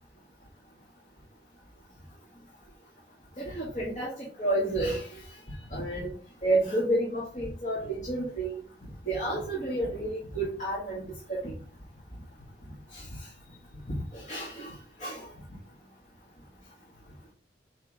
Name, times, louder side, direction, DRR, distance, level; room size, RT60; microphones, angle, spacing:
voice 1, 3.4-5.2 5.7-6.2 6.4-8.6 9.1-11.5 12.9-13.0 14.1-14.7 15.0-15.3, right 1 dB, 40° left, 2.3 m, -30 dB
8.7 x 3.4 x 3.7 m
head